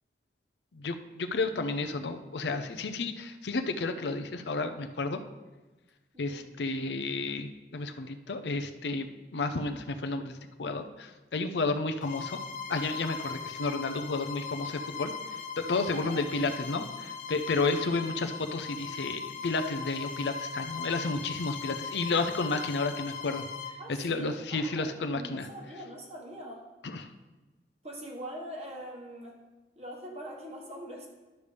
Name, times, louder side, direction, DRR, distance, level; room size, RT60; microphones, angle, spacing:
voice 1, 0.7-5.2 6.2-12.4 12.7-15.1 15.6-23.4 23.9-25.5 26.8-27.1, left 3 dB, 75° left, 7 dB, 0.6 m, -32 dB
voice 2, 6.1-6.5 15.9-16.2 16.5-16.6 23.8-26.7 27.8-29.4 29.7-31.1, equal, 35° right, -1 dB, 1.5 m, -43 dB
Bowed string instrument, 12.0-23.8, left 6 dB, 45° left, 0.8 m, -39 dB
11.5 x 6.7 x 3.4 m, 1.2 s
head